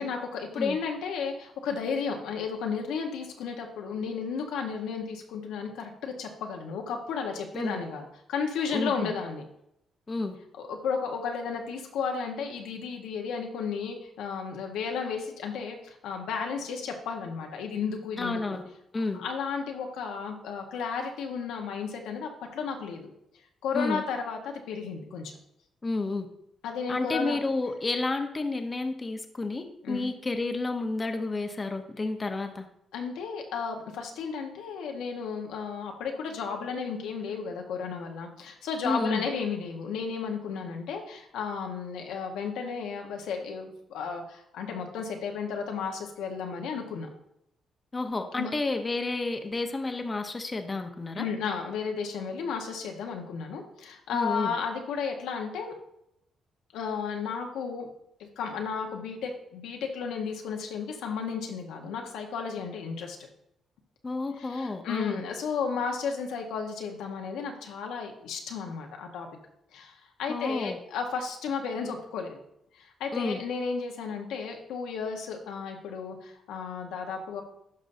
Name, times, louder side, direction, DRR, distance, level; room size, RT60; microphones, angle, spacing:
voice 1, 0.0-8.0 8.3-9.4 10.6-18.6 19.1-23.1 23.6-25.3 26.6-27.4 29.8-30.1 32.9-47.1 48.4-48.5 51.2-55.7 56.7-57.9 58.2-63.2 64.4-69.3 69.7-69.9 70.2-72.4 72.8-77.4, left 5 dB, 90° left, 2 dB, 1.1 m, -33 dB
voice 2, 8.7-9.1 10.1-10.4 18.2-18.7 18.9-19.2 23.7-24.0 25.8-26.3 26.9-32.7 38.8-39.2 47.9-51.3 54.1-54.5 64.0-65.2 70.3-70.8 73.1-73.4, left 3 dB, 25° left, 6 dB, 0.8 m, -31 dB
11.5 x 5.3 x 2.6 m, 0.79 s
cardioid pair, 90°, 0 cm